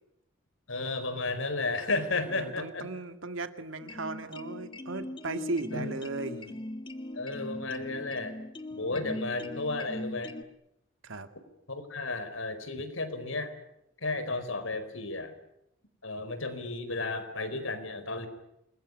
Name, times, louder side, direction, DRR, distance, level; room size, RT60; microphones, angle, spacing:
voice 1, 0.7-2.9 5.7-5.9 7.1-8.4 8.8-10.3 11.7-13.5 14.0-15.3 16.0-18.3, left 3 dB, 80° left, 9 dB, 4.8 m, -33 dB
voice 2, 2.3-6.6 8.7-9.3 11.0-11.3 16.2-16.3, right 2 dB, 80° right, 8 dB, 2.1 m, -37 dB
sound 1, 3.8-10.4, left 1 dB, 25° left, 1.7 m, -40 dB
29.0 x 21.0 x 9.9 m, 0.83 s
head